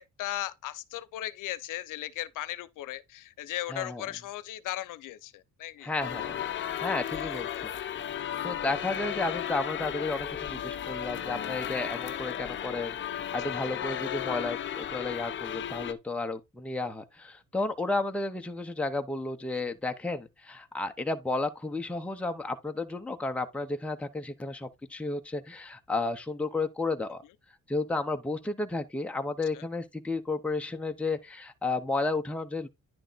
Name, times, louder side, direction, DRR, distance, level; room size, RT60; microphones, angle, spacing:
voice 1, 0.0-5.9 7.1-7.8 13.4-13.6 19.5-19.7 29.5-29.6, left 14 dB, 75° left, 0.8 m, -37 dB
voice 2, 3.7-4.0 5.8-6.4 6.8-7.5 8.1-27.2 27.7-32.7, left 2 dB, 5° left, 0.7 m, -32 dB
sound 1, 6.0-15.9, left 10 dB, 40° left, 0.7 m, -34 dB
10.5 x 3.6 x 3.9 m
cardioid pair, 170°, 31 cm